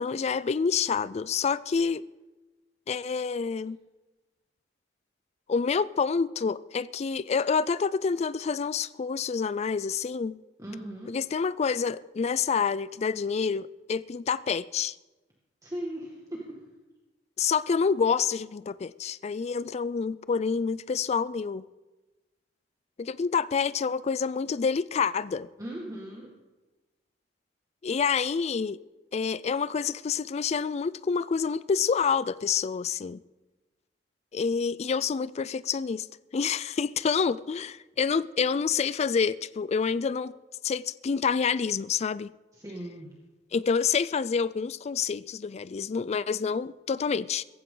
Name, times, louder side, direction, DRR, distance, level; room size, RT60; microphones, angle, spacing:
voice 1, 0.0-2.0 2.9-3.8 5.5-10.4 11.1-14.9 17.4-21.6 23.0-25.5 27.8-28.8 29.1-33.2 34.3-36.1 36.3-40.3 40.6-42.3 43.5-47.4, left 5 dB, 35° left, 0.3 m, -28 dB
voice 2, 10.6-11.2 15.6-16.6 25.6-26.3 42.5-43.1, right 1 dB, 20° right, 1.9 m, -38 dB
17.0 x 15.0 x 3.9 m
head